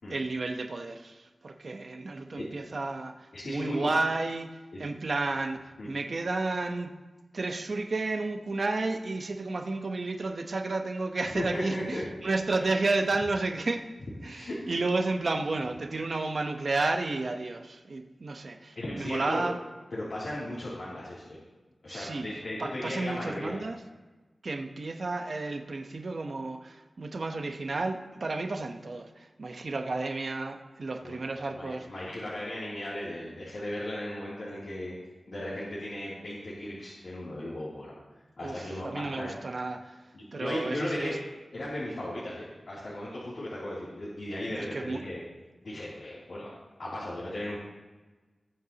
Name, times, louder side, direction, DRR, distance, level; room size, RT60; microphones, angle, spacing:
voice 1, 0.1-6.9 7.3-13.8 14.2-19.6 21.9-22.3 22.6-23.8 24.4-31.9 38.4-40.0 40.3-41.2 44.5-45.0, right 3 dB, 60° right, 5 dB, 0.9 m, -32 dB
voice 2, 3.3-3.9 4.7-4.8 5.8-5.9 11.3-12.0 12.6-12.7 14.2-14.6 18.7-19.5 19.9-21.4 21.8-23.6 31.0-31.2 31.5-34.9 35.3-37.9 38.4-39.3 40.1-41.2 41.5-45.2 45.6-46.5 46.8-47.6, left 1 dB, 75° left, -9 dB, 2.9 m, -36 dB
19.0 x 8.0 x 2.9 m, 1.2 s
wide cardioid pair, 90°, 0 cm